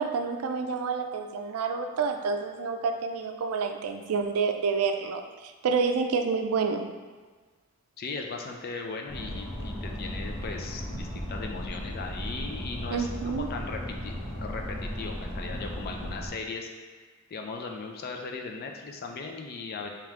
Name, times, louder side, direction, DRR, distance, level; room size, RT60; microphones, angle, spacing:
voice 1, 0.0-6.9 12.9-13.5, right 5 dB, 85° right, 5 dB, 0.4 m, -28 dB
voice 2, 8.0-14.1 14.4-16.7 17.3-19.9, left 4 dB, 45° left, 3 dB, 0.4 m, -38 dB
sound 1, 9.1-16.3, equal, 10° left, 0.8 m, -36 dB
3.4 x 2.9 x 3.6 m, 1.4 s
head